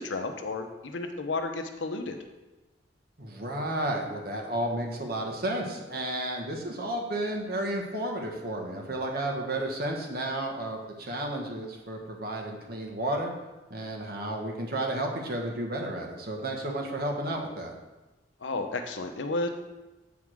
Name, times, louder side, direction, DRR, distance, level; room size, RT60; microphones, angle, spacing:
voice 1, 0.0-2.2 18.4-19.5, left 3 dB, 85° left, 6 dB, 0.8 m, -32 dB
voice 2, 3.2-13.3 13.7-17.7, right 1 dB, 55° right, 1 dB, 1.3 m, -32 dB
8.2 x 3.6 x 6.2 m, 1.1 s
head